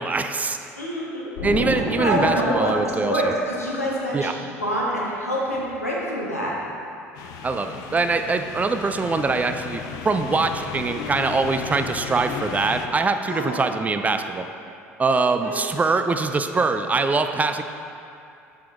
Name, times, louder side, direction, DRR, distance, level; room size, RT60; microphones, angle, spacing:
voice 1, 0.0-0.6 1.4-3.2 4.1-4.3 7.4-14.5 15.0-17.6, right 3 dB, 20° right, 8 dB, 0.4 m, -23 dB
voice 2, 0.8-1.3 1.7-2.7 3.0-4.3 4.6-6.5 13.3-13.6 15.2-15.6, equal, 90° left, -6 dB, 1.3 m, -26 dB
Explosion, 1.4-4.0, left 1 dB, 70° left, 1.6 m, -30 dB
sound 1, 7.1-12.9, left 7 dB, 50° left, 0.5 m, -34 dB
7.6 x 6.8 x 3.5 m, 2.6 s
figure-of-eight pair, 65°, 8 cm